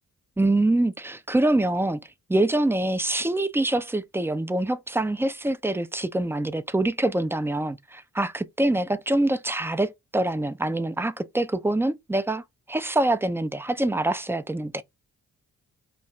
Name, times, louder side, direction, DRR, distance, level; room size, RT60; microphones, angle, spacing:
voice 1, 0.4-2.0 2.3-12.4 12.7-14.8, right 1 dB, 5° right, 0.5 m, -25 dB
3.0 x 2.3 x 4.1 m
cardioid pair, 60°, 36 cm